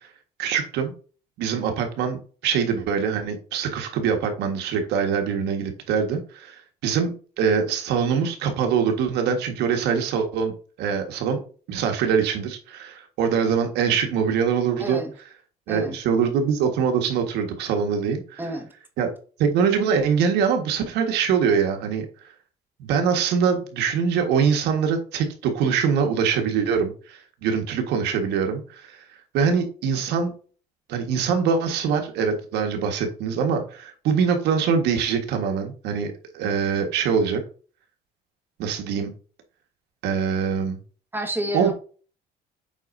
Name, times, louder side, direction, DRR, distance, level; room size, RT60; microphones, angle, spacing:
voice 1, 0.4-0.9 1.4-10.5 10.8-11.4 11.7-15.0 15.7-18.4 19.0-19.1 19.4-22.0 22.8-29.0 29.3-30.3 30.9-37.4 38.6-39.1 40.0-40.8 41.5-41.7, right 6 dB, 85° right, 5 dB, 1.7 m, -23 dB
voice 2, 14.8-15.1 15.7-16.0 18.4-18.7 41.1-41.7, right 1 dB, 10° right, 4 dB, 1.6 m, -29 dB
8.2 x 4.4 x 2.7 m, 0.37 s
cardioid pair, 110°, 17 cm